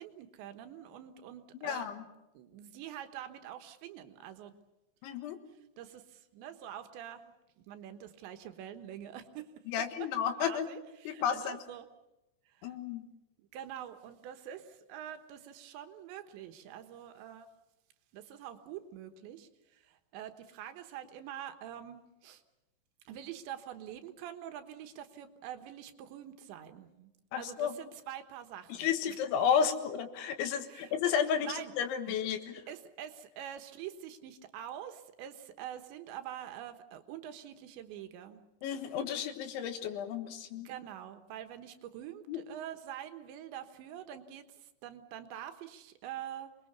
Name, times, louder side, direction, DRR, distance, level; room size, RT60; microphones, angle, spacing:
voice 1, 0.0-1.9 2.4-4.5 5.8-9.5 9.8-10.1 10.3-11.9 12.5-12.8 13.4-17.5 18.1-22.4 23.1-27.1 27.4-29.2 29.4-29.5 30.7-31.0 31.4-31.7 32.1-32.2 32.7-38.4 40.7-46.5, right 10 dB, 80° right, 8 dB, 3.5 m, -45 dB
voice 2, 1.6-2.0 5.0-5.4 9.7-10.7 11.1-11.6 12.6-13.1 27.3-27.7 28.7-32.6 38.6-40.7 42.3-42.4, left 8 dB, 85° left, 7 dB, 3.9 m, -32 dB
27.0 x 21.0 x 7.0 m, 0.96 s
omnidirectional pair, 5.3 m